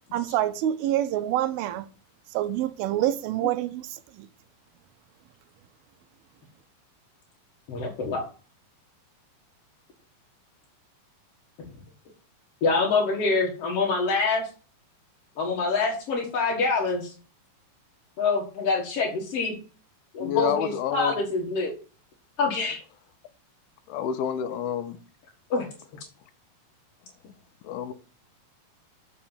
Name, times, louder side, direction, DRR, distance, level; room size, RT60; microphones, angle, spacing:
voice 1, 0.1-1.9 2.3-4.3, right 12 dB, 90° right, 2.6 m, -27 dB
voice 2, 7.7-8.2 12.6-14.5 15.4-17.1 18.2-19.6 20.1-21.7 22.4-22.8 24.3-24.4 25.5-25.7, left 4 dB, 50° left, 2.2 m, -25 dB
voice 3, 20.2-21.1 23.9-25.0 27.6-27.9, left 8 dB, 90° left, 2.7 m, -28 dB
7.5 x 6.0 x 7.2 m
omnidirectional pair, 4.2 m